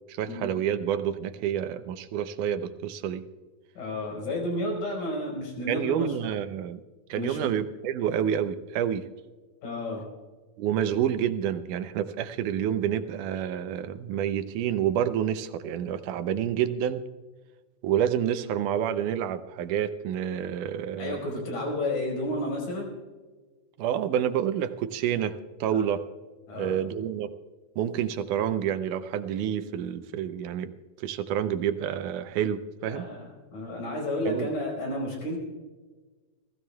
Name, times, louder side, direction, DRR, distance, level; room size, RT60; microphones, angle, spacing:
voice 1, 0.1-3.2 5.7-6.8 7.1-9.1 10.6-17.0 17.8-21.2 23.8-26.0 26.5-27.3 27.8-33.1 34.3-34.5, right 9 dB, 80° right, 10 dB, 2.2 m, -28 dB
voice 2, 3.8-6.3 7.1-7.5 9.6-10.0 21.0-22.9 25.7-25.8 26.5-26.8 32.9-33.2 33.5-35.4, left 1 dB, 80° left, 0 dB, 6.2 m, -31 dB
30.0 x 16.0 x 2.3 m, 1.3 s
omnidirectional pair, 3.6 m